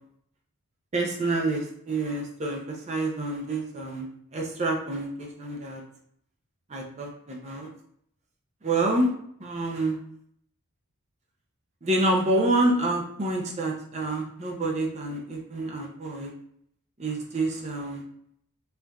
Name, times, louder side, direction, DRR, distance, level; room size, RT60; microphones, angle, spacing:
voice 1, 0.9-2.6 2.9-4.0 4.3-5.8 6.7-7.7 8.6-9.1 9.4-10.0 11.8-16.3 17.0-18.0, right 2 dB, 30° right, 1 dB, 0.5 m, -27 dB
4.4 x 2.5 x 2.3 m, 0.68 s
head